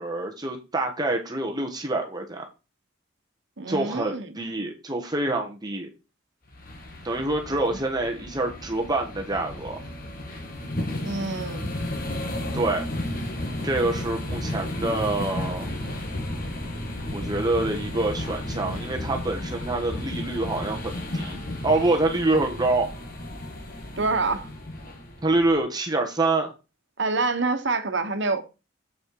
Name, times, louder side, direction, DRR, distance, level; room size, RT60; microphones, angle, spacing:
voice 1, 0.0-2.4 3.7-5.9 7.0-9.8 12.5-12.9 13.6-15.7 17.1-22.9 25.2-26.5, right 2 dB, 20° right, 1.2 m, -26 dB
voice 2, 3.6-4.3 7.5-7.8 11.0-11.7 24.0-24.5 27.0-28.4, right 3 dB, 65° right, 1.4 m, -27 dB
sound 1, 6.5-25.6, left 1 dB, 50° left, 2.0 m, -33 dB
7.7 x 6.2 x 4.8 m
head